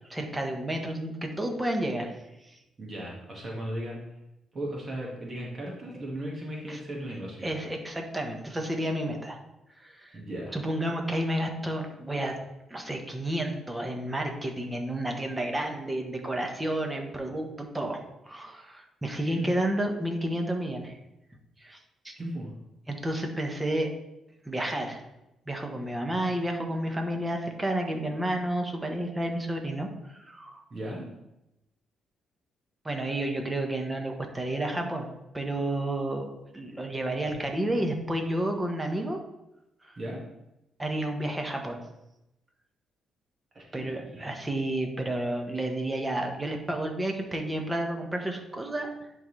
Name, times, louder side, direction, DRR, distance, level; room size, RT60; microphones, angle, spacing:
voice 1, 0.1-2.1 2.5-2.6 6.7-6.8 7.4-9.4 9.8-10.2 10.5-12.3 12.7-21.0 21.6-21.8 22.0-22.1 22.9-23.9 24.4-25.0 25.5-30.6 32.8-35.1 35.3-36.3 36.5-39.2 40.8-41.8 43.7-48.9, right 1 dB, 15° right, 3 dB, 1.2 m, -31 dB
voice 2, 2.8-4.0 4.5-7.5 10.1-10.6 19.2-19.5 22.2-22.5 30.7-31.1 40.0-40.2 43.5-44.2, right 1 dB, 35° right, -2 dB, 1.9 m, -36 dB
10.5 x 3.9 x 3.3 m, 0.90 s
cardioid pair, 90°, 0 cm